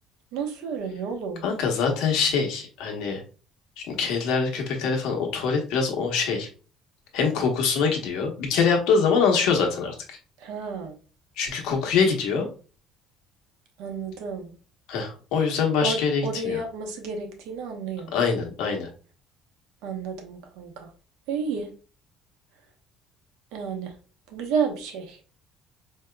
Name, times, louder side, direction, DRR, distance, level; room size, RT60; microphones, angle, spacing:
voice 1, 0.3-1.4 10.4-10.9 13.8-14.5 15.8-18.1 19.8-20.9 21.3-21.7 23.5-23.9 24.3-25.2, right 5 dB, 85° right, 4 dB, 0.9 m, -31 dB
voice 2, 1.4-3.2 3.9-6.5 7.1-10.2 11.4-12.5 14.9-16.6 18.1-18.9, left 5 dB, 75° left, 1 dB, 1.0 m, -24 dB
4.6 x 2.8 x 2.2 m, 0.37 s
cardioid pair, 170°, 0 cm